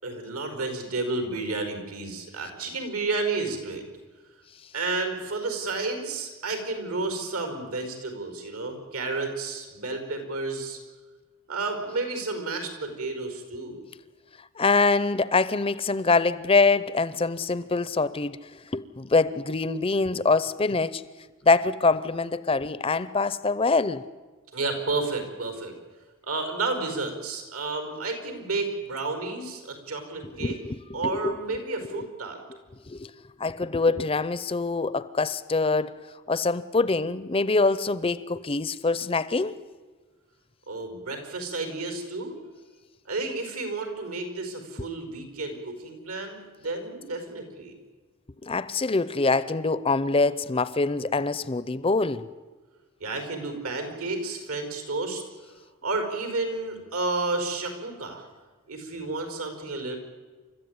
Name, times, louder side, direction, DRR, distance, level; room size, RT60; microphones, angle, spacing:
voice 1, 0.0-3.8 4.7-10.8 11.5-13.8 24.5-25.7 26.2-30.6 30.9-32.4 40.7-42.4 43.0-47.7 53.0-55.2 55.8-58.2 58.7-60.0, right 3 dB, 85° right, 5.0 m, -31 dB
voice 2, 14.6-18.4 18.7-21.0 21.4-24.0 30.4-30.8 31.0-31.3 31.9-32.1 32.9-33.1 33.4-35.9 36.3-39.6 48.4-52.2, left 3 dB, 25° left, 0.6 m, -24 dB
29.5 x 13.5 x 9.6 m
head